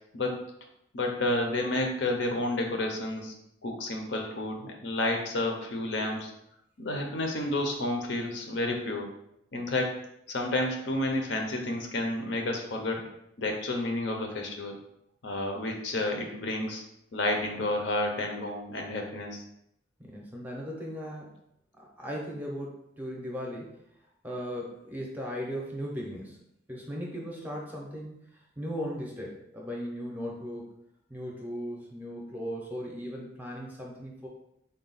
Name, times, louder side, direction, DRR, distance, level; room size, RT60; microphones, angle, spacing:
voice 1, 0.9-3.3 3.6-6.3 6.8-9.1 9.5-9.9 10.3-13.0 13.4-14.8 15.2-16.8 17.1-19.4, left 2 dB, 65° left, 2 dB, 0.6 m, -30 dB
voice 2, 20.0-21.3 21.8-23.8 24.2-26.4 26.7-28.2 28.6-30.7 31.1-34.3, equal, 10° right, -2 dB, 0.6 m, -37 dB
3.8 x 2.3 x 3.9 m, 0.78 s
head